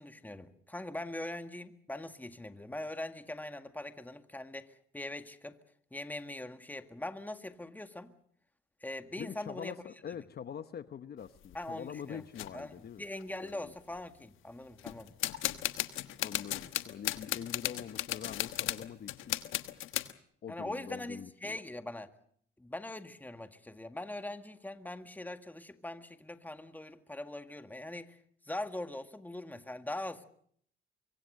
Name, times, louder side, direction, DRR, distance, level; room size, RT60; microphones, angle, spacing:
voice 1, 0.0-5.6 5.9-8.1 8.8-9.7 11.5-12.2 12.5-15.2 20.5-22.1 22.6-28.2 28.5-30.2, left 1 dB, 10° left, 8 dB, 1.8 m, -42 dB
voice 2, 9.2-13.0 13.4-13.7 16.0-19.4 20.4-21.6, left 8 dB, 55° left, 12 dB, 1.0 m, -44 dB
sound 1, 11.2-11.6 12.3-12.5 13.2-13.3 13.5-14.0 14.8-20.1, left 14 dB, 85° left, 1.3 m, -36 dB
24.5 x 24.0 x 6.6 m, 0.64 s
cardioid pair, 90°, 20 cm